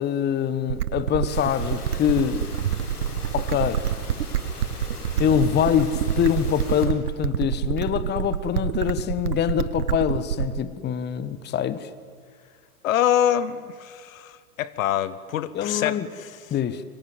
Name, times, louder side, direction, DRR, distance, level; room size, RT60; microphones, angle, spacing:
voice 1, 0.0-2.5 3.3-3.8 5.2-11.9 15.5-16.1 16.5-16.8, left 9 dB, 25° left, 1.1 m, -24 dB
sound 1, 0.7-10.7, right 10 dB, 85° right, 0.7 m, -27 dB
sound 2, 1.3-6.9, left 3 dB, 80° left, 4.4 m, -38 dB
voice 2, 12.8-16.4, left 10 dB, 60° left, 1.3 m, -25 dB
25.0 x 24.0 x 7.9 m
hypercardioid pair, 100°, 45 cm